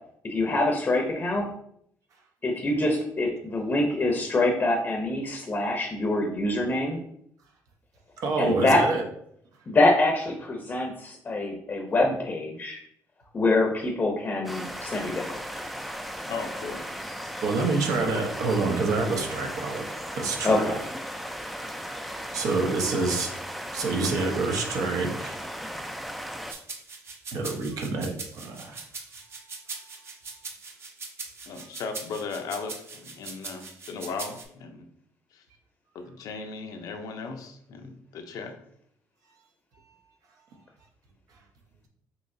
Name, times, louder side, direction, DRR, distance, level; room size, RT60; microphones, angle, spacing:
voice 1, 0.2-1.5 2.4-7.0 8.4-8.8 9.7-12.8 13.3-15.4 20.4-20.8, left 2 dB, 30° left, 2 dB, 0.7 m, -25 dB
voice 2, 8.2-9.0 17.4-19.9 20.1-20.8 21.2-21.3 22.3-23.3 23.7-25.3 27.3-28.8, right 3 dB, 70° right, 2 dB, 0.9 m, -27 dB
sound 1, 14.5-26.5, equal, ahead, 0.3 m, -36 dB
voice 3, 16.3-16.8 31.5-34.9 35.3-35.4 35.9-38.5, left 4 dB, 75° left, 5 dB, 0.7 m, -37 dB
sound 2, 26.5-34.4, right 4 dB, 40° right, 0.7 m, -40 dB
5.6 x 3.0 x 2.7 m, 0.70 s
cardioid pair, 120°, 6 cm